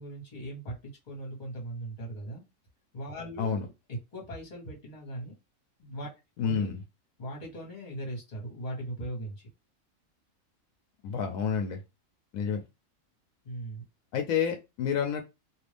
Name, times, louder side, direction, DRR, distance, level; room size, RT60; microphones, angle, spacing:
voice 1, 0.0-2.4 2.9-5.3 5.8-6.1 6.4-6.7 7.2-9.5 13.4-13.8, right 1 dB, 35° left, -1 dB, 1.3 m, -39 dB
voice 2, 6.4-6.7 11.0-11.8 12.3-12.6 14.1-15.2, left 7 dB, 80° left, 4 dB, 1.0 m, -29 dB
2.8 x 2.5 x 3.3 m, 0.25 s
omnidirectional pair, 1.4 m